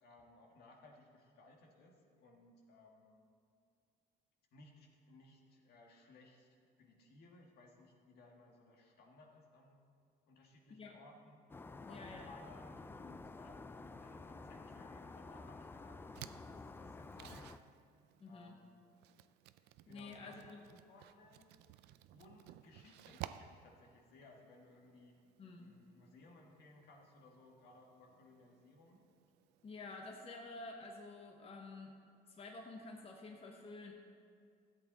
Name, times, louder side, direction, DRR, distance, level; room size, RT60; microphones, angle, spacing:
voice 1, 0.0-3.2 4.5-6.5 6.8-9.8 10.3-11.4 11.9-17.6 18.3-18.8 19.9-21.5 22.1-25.2 25.6-29.0, left 2 dB, 70° left, 0 dB, 1.8 m, -61 dB
sound 1, 11.5-17.6, left 3 dB, 15° left, 0.3 m, -51 dB
voice 2, 11.8-12.3 18.2-18.5 19.9-20.6 25.4-25.8 29.6-31.9 32.3-33.9, left 3 dB, 35° left, 1 dB, 1.1 m, -50 dB
sound 2, 16.1-29.8, right 13 dB, 85° right, 0.4 m, -56 dB
13.5 x 8.3 x 4.1 m, 2.3 s
cardioid pair, 110°, 17 cm